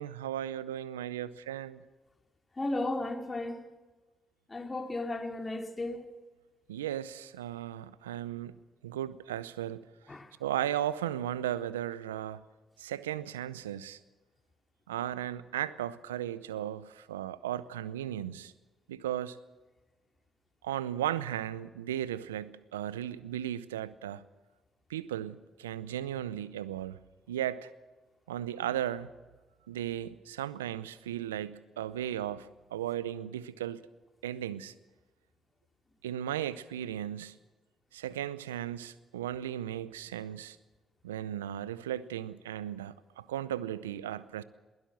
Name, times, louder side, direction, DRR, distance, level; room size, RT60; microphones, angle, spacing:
voice 1, 0.0-1.8 6.7-8.5 8.8-9.9 10.4-12.4 12.8-14.0 14.9-18.5 18.9-19.4 20.6-24.2 24.9-27.0 27.3-27.7 28.3-29.1 29.7-33.8 34.2-34.7 36.0-37.4 37.9-40.6 41.0-44.4, right 11 dB, 90° right, 0.6 m, -36 dB
voice 2, 2.6-3.6 4.5-6.0 10.1-10.3, left 2 dB, 25° left, 2.9 m, -34 dB
22.0 x 16.0 x 7.4 m
hypercardioid pair, 45°, 0 cm